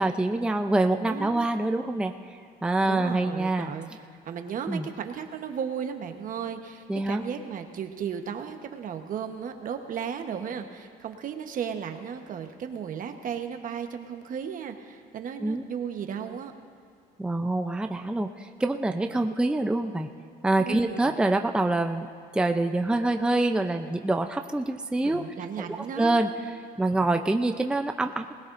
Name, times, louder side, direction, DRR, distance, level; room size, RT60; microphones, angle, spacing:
voice 1, 0.0-3.7 4.7-4.9 6.9-7.2 15.4-15.6 17.2-20.1 20.4-22.1 22.3-25.2 25.6-25.7 26.0-26.3 26.8-28.3, right 2 dB, 5° right, 5 dB, 0.5 m, -26 dB
voice 2, 1.1-1.4 2.8-3.9 4.2-16.5 20.7-21.1 25.0-26.6, right 7 dB, 55° right, 6 dB, 1.1 m, -35 dB
20.0 x 17.5 x 2.6 m, 2.4 s
cardioid pair, 110°, 17 cm